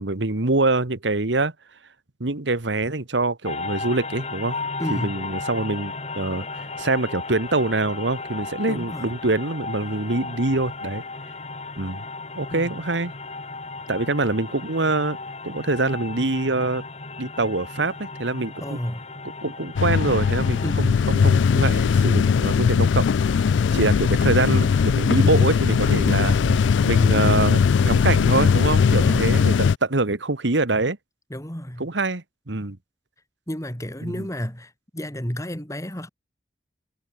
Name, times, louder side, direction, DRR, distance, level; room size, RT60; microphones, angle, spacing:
voice 1, 0.0-1.5 2.2-4.6 4.9-11.0 11.8-12.0 12.4-13.1 13.9-15.2 15.4-16.8 17.2-18.8 19.4-26.4 26.8-31.0 31.8-32.8 34.0-34.3, right 2 dB, 80° right, 1.7 m, -25 dB
sound 1, 3.4-20.7, left 3 dB, 35° left, 5.7 m, -35 dB
voice 2, 4.8-5.2 8.7-9.1 12.5-12.7 18.6-19.1 20.6-21.0 26.3-26.7 29.0-29.3 31.3-31.9 33.5-36.1, equal, 15° left, 3.3 m, -31 dB
sound 2, 19.8-29.8, left 6 dB, 90° left, 0.4 m, -19 dB
head